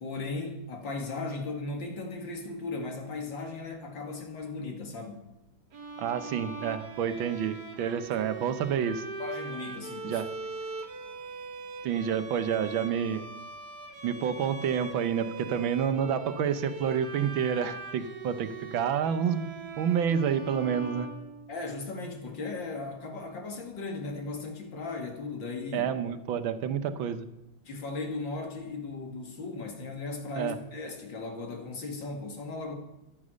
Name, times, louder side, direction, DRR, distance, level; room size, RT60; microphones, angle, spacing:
voice 1, 0.0-5.2 9.2-10.2 21.5-25.9 27.7-32.7, left 3 dB, 65° left, 2 dB, 2.9 m, -37 dB
Bowed string instrument, 5.7-21.8, right 3 dB, 55° right, 2.0 m, -41 dB
voice 2, 6.0-9.0 10.0-10.3 11.8-13.3 14.0-19.5 19.8-21.1 25.7-27.3 30.4-30.6, right 8 dB, 75° right, 10 dB, 1.7 m, -29 dB
14.5 x 11.0 x 6.3 m, 0.92 s
omnidirectional pair, 2.2 m